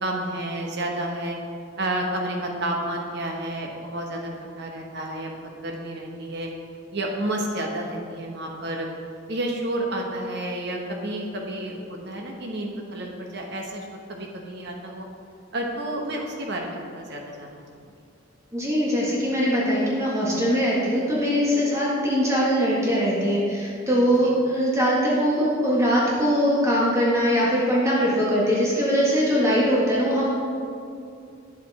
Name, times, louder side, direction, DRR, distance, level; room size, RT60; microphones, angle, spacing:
voice 1, 0.0-1.4 1.8-6.5 6.9-8.9 9.3-15.1 15.5-17.8 24.2-24.3, right 1 dB, 60° right, 0 dB, 1.1 m, -30 dB
voice 2, 18.5-30.3, equal, 15° right, -6 dB, 1.7 m, -22 dB
10.0 x 7.7 x 4.2 m, 2.4 s
head